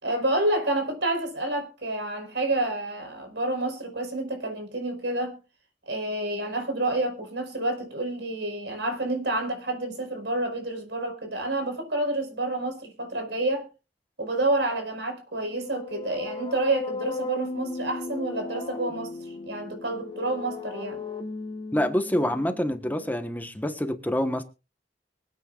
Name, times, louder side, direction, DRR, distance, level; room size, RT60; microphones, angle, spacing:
voice 1, 0.0-5.4 5.9-13.7 14.2-19.2 19.5-21.0, right 2 dB, 80° right, 5.1 m, -29 dB
sound 1, 15.4-23.2, left 3 dB, 30° left, 2.1 m, -36 dB
voice 2, 21.7-24.4, left 1 dB, 10° left, 1.3 m, -26 dB
24.0 x 9.2 x 2.5 m
head